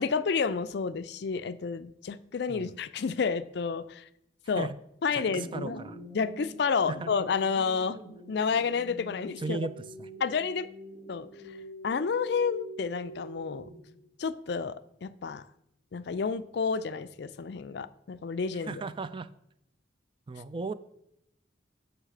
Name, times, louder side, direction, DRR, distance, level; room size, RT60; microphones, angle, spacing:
voice 1, 0.0-4.0 4.5-4.7 5.0-5.8 6.1-8.0 8.3-9.6 10.2-10.7 11.1-11.3 11.8-13.7 14.2-15.4 15.9-18.8, left 5 dB, 60° left, 14 dB, 0.4 m, -30 dB
sound 1, 5.1-14.0, right 1 dB, 5° left, 2.0 m, -46 dB
voice 2, 5.1-6.0 6.9-7.1 9.4-9.7 10.0-10.1 18.5-19.3 20.3-20.7, right 3 dB, 25° right, 14 dB, 0.3 m, -36 dB
9.7 x 3.3 x 6.6 m, 0.77 s
head